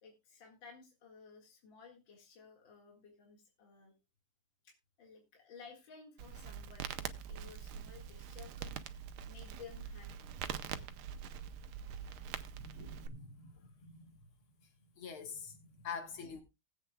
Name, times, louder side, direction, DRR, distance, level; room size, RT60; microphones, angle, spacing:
voice 1, 0.0-3.9 4.6-6.9 7.3-10.4 13.5-13.7, left 5 dB, 65° left, 2.7 m, -56 dB
Crackle, 6.2-13.1, right 8 dB, 85° right, 1.6 m, -44 dB
voice 2, 12.0-14.3 14.6-14.7 15.0-16.4, left 5 dB, 85° left, 2.5 m, -47 dB
19.5 x 8.1 x 2.3 m
omnidirectional pair, 2.3 m